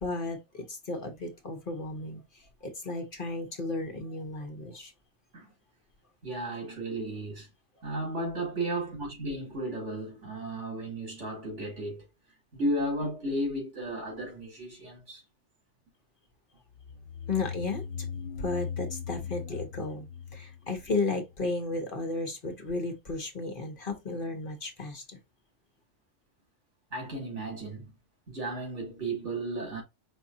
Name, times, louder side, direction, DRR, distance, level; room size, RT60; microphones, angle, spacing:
voice 1, 0.0-4.9 17.3-17.9 18.4-25.2, left 3 dB, 45° left, 1.3 m, -34 dB
voice 2, 6.2-7.5 7.8-12.0 12.5-15.2 26.9-27.9 28.3-29.8, right 1 dB, 70° right, 3.0 m, -34 dB
sound 1, 16.8-21.3, left 7 dB, 65° left, 0.8 m, -38 dB
5.4 x 3.3 x 2.7 m
omnidirectional pair, 1.2 m